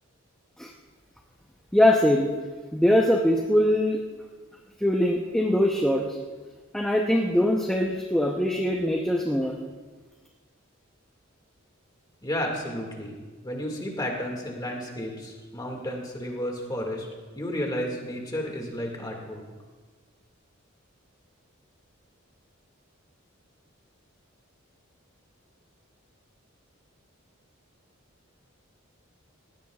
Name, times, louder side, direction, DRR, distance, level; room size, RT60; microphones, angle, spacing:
voice 1, 1.7-2.3 2.7-4.0 4.8-6.1 6.7-9.5, left 1 dB, 5° left, -1 dB, 0.7 m, -22 dB
voice 2, 12.2-13.2 13.4-17.1 17.3-19.4, equal, 20° left, 1 dB, 2.0 m, -32 dB
19.5 x 16.5 x 2.4 m, 1.4 s
head